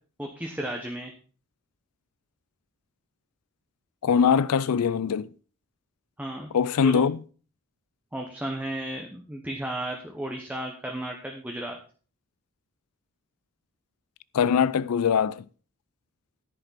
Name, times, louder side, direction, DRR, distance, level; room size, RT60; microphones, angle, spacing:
voice 1, 0.2-1.1 6.2-6.5 6.8-7.0 8.1-11.8, right 1 dB, 5° right, 1.1 m, -34 dB
voice 2, 4.0-5.3 6.5-7.2 14.3-15.4, left 7 dB, 85° left, 0.4 m, -22 dB
10.5 x 9.9 x 4.1 m
head